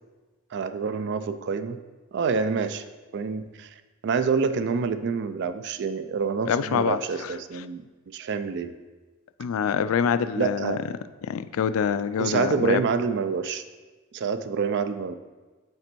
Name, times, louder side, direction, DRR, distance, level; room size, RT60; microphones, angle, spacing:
voice 1, 0.5-1.8 2.1-2.8 3.1-8.8 10.4-10.8 12.2-13.6 14.1-15.2, right 5 dB, 55° right, 11 dB, 0.4 m, -27 dB
voice 2, 6.5-7.3 9.4-10.8 11.2-12.8, left 7 dB, 70° left, 13 dB, 0.3 m, -25 dB
6.6 x 4.3 x 4.5 m, 1.3 s
head